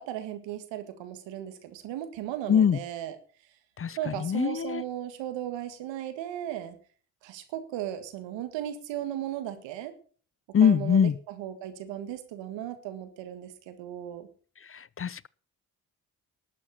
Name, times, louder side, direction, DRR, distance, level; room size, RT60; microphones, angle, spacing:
voice 1, 0.0-3.2 4.0-6.8 7.2-9.9 10.6-14.3, right 11 dB, 80° right, 1.8 m, -36 dB
voice 2, 3.8-4.8 10.5-11.1 15.0-15.3, left 8 dB, 30° left, 0.5 m, -23 dB
12.0 x 7.6 x 7.5 m
hypercardioid pair, 40°, 43 cm